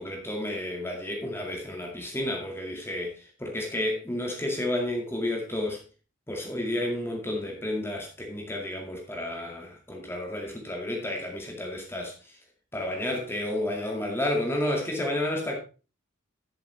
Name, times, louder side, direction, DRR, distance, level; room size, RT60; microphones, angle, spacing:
voice 1, 0.0-5.8 6.3-12.4 12.7-15.6, left 1 dB, 10° left, 2.1 m, -31 dB
11.5 x 7.6 x 4.3 m
head